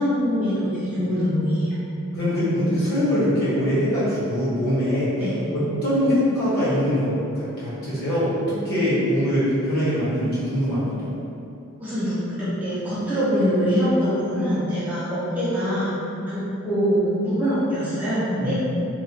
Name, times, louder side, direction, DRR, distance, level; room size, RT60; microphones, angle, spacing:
voice 1, 0.0-1.8 5.2-5.4 11.8-15.9 16.3-18.5, equal, 10° right, -12 dB, 0.5 m, -23 dB
voice 2, 2.1-5.1 5.5-11.1 18.4-18.5, equal, 45° left, -10 dB, 0.9 m, -23 dB
2.9 x 2.2 x 2.7 m, 2.7 s
head